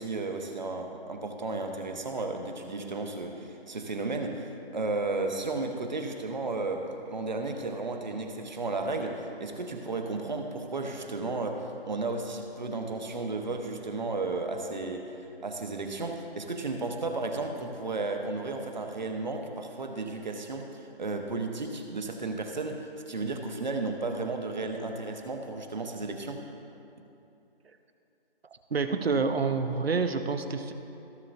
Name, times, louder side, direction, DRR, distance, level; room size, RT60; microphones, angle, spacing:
voice 1, 0.0-15.2 15.4-26.5, right 3 dB, 45° right, 4 dB, 1.0 m, -33 dB
voice 2, 28.7-30.7, right 4 dB, 75° right, 8 dB, 0.9 m, -27 dB
16.0 x 6.9 x 2.7 m, 2.8 s
figure-of-eight pair, 170°, 31 cm